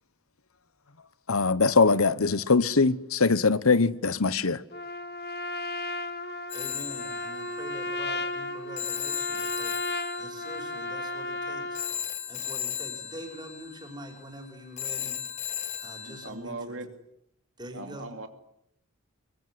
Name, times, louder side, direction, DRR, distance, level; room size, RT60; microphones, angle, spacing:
voice 1, 1.3-4.6, left 4 dB, 80° left, 1.0 m, -22 dB
Trumpet, 4.7-12.0, left 2 dB, 50° left, 1.8 m, -34 dB
Telephone, 6.5-16.3, left 9 dB, 30° left, 2.1 m, -37 dB
voice 2, 6.5-9.8 10.2-11.9 12.3-15.2 15.8-16.9 17.6-18.1, equal, 20° right, 5.9 m, -44 dB
voice 3, 16.0-16.9 17.7-18.3, right 2 dB, 65° right, 2.7 m, -39 dB
25.5 x 23.0 x 9.7 m
head